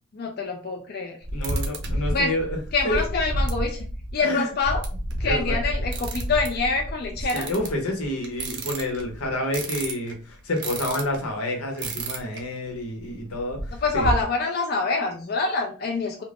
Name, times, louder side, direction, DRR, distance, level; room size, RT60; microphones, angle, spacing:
voice 1, 0.1-1.2 2.1-2.3 2.7-3.8 4.1-4.9 5.2-7.5 13.7-16.2, left 3 dB, 45° left, 1 dB, 0.4 m, -26 dB
sound 1, 1.2-11.2 11.7-12.4 12.7-12.8 13.1-14.2, right 1 dB, 50° right, 0.5 m, -30 dB
voice 2, 1.3-2.6 2.8-3.0 4.2-4.5 5.2-5.6 7.3-13.6 13.9-14.1, left 1 dB, 85° left, 3 dB, 0.8 m, -28 dB
2.4 x 2.0 x 3.3 m, 0.38 s
head